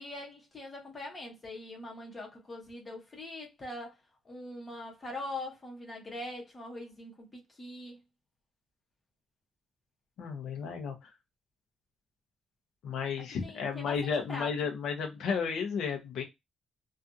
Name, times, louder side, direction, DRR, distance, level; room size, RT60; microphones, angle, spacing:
voice 1, 0.0-4.0 4.2-8.0 13.2-14.5, left 2 dB, 20° left, 1.0 m, -42 dB
voice 2, 10.2-11.1 12.8-16.2, left 6 dB, 65° left, 0.7 m, -33 dB
2.7 x 2.4 x 2.3 m
cardioid pair, 175°, 0 cm